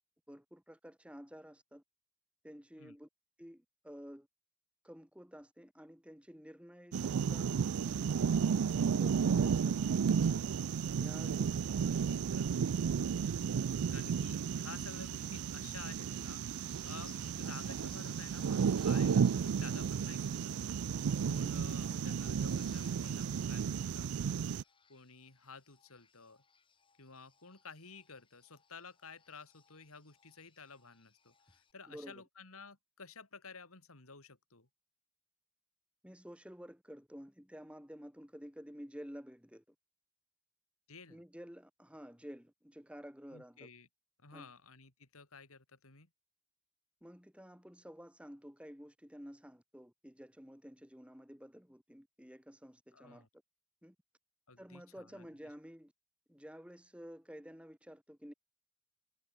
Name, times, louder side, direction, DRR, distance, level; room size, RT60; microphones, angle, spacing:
voice 1, 0.3-1.8 2.4-3.1 3.4-4.3 4.8-7.6 7.8-9.8 11.0-11.6 11.9-12.1 31.9-32.2 36.0-39.6 41.1-43.7 44.3-44.5 47.0-53.3 53.8-54.0 54.6-55.9 56.3-58.3, equal, 5° right, 2.3 m, -51 dB
sound 1, 6.9-24.6, right 6 dB, 85° right, 0.4 m, -33 dB
voice 2, 11.8-12.5 13.9-20.6 21.2-24.4 24.9-26.4 27.0-34.7 40.9-41.2 43.3-43.9 44.2-46.1 52.9-53.3 54.5-55.5, left 4 dB, 80° left, 3.5 m, -53 dB
sound 2, 15.3-31.7, left 6 dB, 25° left, 7.3 m, -64 dB
head